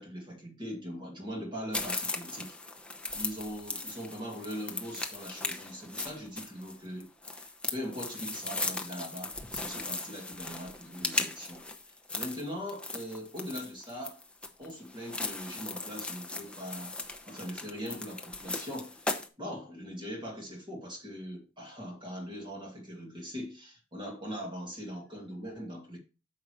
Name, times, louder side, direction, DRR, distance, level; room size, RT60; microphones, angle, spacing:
voice 1, 0.0-2.6 3.1-7.1 7.4-11.6 12.1-14.2 14.6-17.0 17.3-19.1 19.4-26.0, equal, 25° right, 2.2 m, -41 dB
sound 1, 1.7-19.3, left 2 dB, 5° left, 0.9 m, -38 dB
9.4 x 6.6 x 3.1 m
head